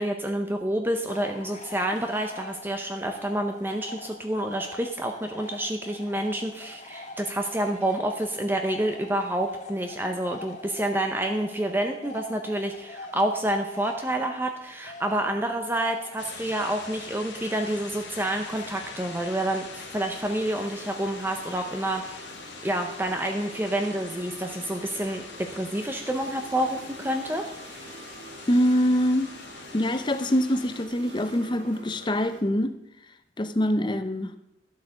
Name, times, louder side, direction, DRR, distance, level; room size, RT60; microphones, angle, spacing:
voice 1, 0.0-22.3 22.6-27.5, right 1 dB, 10° right, 4 dB, 0.7 m, -28 dB
sound 1, 1.1-19.6, left 2 dB, 40° left, 1.5 m, -44 dB
sound 2, 16.2-30.8, left 4 dB, 75° left, 2.1 m, -43 dB
sound 3, 18.7-32.4, right 2 dB, 70° right, 2.2 m, -47 dB
voice 2, 28.5-29.3 29.7-32.7 33.4-34.3, equal, 25° left, 11 dB, 0.7 m, -24 dB
12.0 x 8.2 x 6.3 m, 0.83 s
head